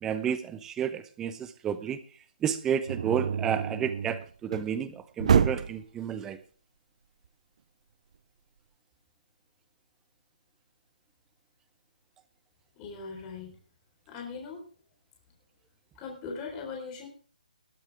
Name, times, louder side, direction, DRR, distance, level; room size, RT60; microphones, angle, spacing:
voice 1, 0.0-2.0 2.4-6.4, right 8 dB, 10° right, 13 dB, 0.9 m, -31 dB
sound 1, 2.9-4.8 5.2-5.8, right 7 dB, 50° right, 0.5 m, -27 dB
voice 2, 12.8-13.5 14.1-14.6 16.0-17.1, left 5 dB, 15° left, 1 dB, 4.0 m, -39 dB
20.5 x 9.0 x 3.5 m, 0.41 s
hypercardioid pair, 160°, 5 cm